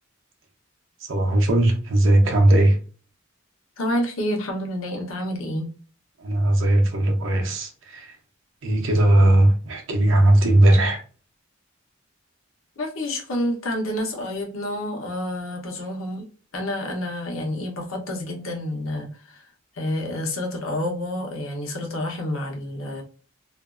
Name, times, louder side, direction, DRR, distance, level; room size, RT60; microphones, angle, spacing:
voice 1, 1.0-2.8 6.2-8.2 8.6-11.0, right 1 dB, 70° right, 0.6 m, -18 dB
voice 2, 3.8-5.7 12.8-16.2 16.5-19.4 19.7-23.0, left 1 dB, 80° left, 0.8 m, -28 dB
2.5 x 2.3 x 2.3 m
head